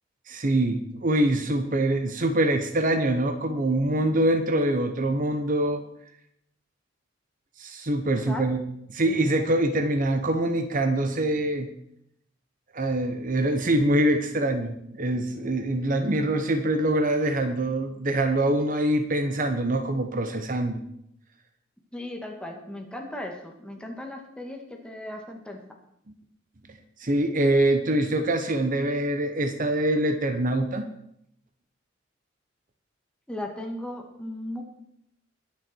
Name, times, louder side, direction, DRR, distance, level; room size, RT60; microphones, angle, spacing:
voice 1, 0.3-5.8 7.6-8.6 8.9-11.7 12.7-20.8 26.7-30.9, right 1 dB, 45° right, 7 dB, 1.0 m, -24 dB
voice 2, 8.1-8.4 21.9-25.6 33.3-34.6, left 1 dB, 5° left, 1 dB, 2.1 m, -36 dB
21.5 x 7.3 x 4.6 m, 0.74 s
head